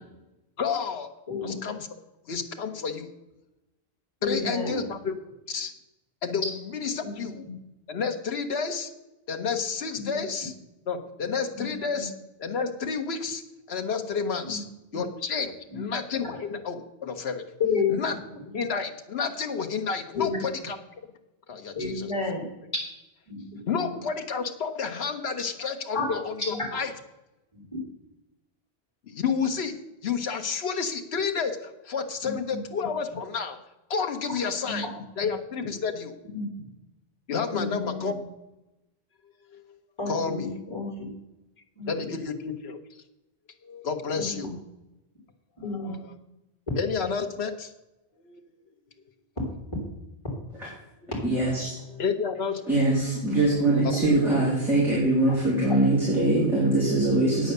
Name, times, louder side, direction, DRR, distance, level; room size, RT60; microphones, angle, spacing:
voice 1, 0.6-1.1 1.4-1.9 2.3-3.1 4.2-5.2 5.5-5.7 6.2-7.4 7.9-8.9 9.3-10.5 10.9-12.1 12.4-13.4 13.7-14.6 14.9-17.5 17.9-18.1 18.5-20.8 21.5-22.1 23.7-26.9 29.1-29.8 30.0-33.6 33.9-34.9 35.2-36.2 37.3-38.1 39.5-39.6 40.1-40.5 41.8-42.8 43.6-44.5 45.8-46.0 46.8-47.7 48.2-48.4 51.9-52.6 53.8-54.1, left 5 dB, 80° left, 5 dB, 1.2 m, -30 dB
voice 2, 4.2-4.8 7.0-7.1 7.4-7.5 9.9-10.1 11.5-11.7 11.9-12.1 14.4-14.6 14.9-15.0 15.7-15.8 17.6-18.0 18.5-18.6 20.1-20.4 21.7-22.4 23.3-24.0 25.9-26.0 26.5-26.6 27.5-27.6 32.2-32.6 34.6-34.8 36.3-36.5 37.5-38.2 40.0-41.1 41.8-42.1 44.1-44.5 45.6-46.0, left 4 dB, 25° left, -2 dB, 3.4 m, -31 dB
voice 3, 51.2-51.7 52.7-57.5, right 2 dB, ahead, -7 dB, 3.2 m, -22 dB
9.2 x 7.9 x 6.6 m, 0.95 s
omnidirectional pair, 1.1 m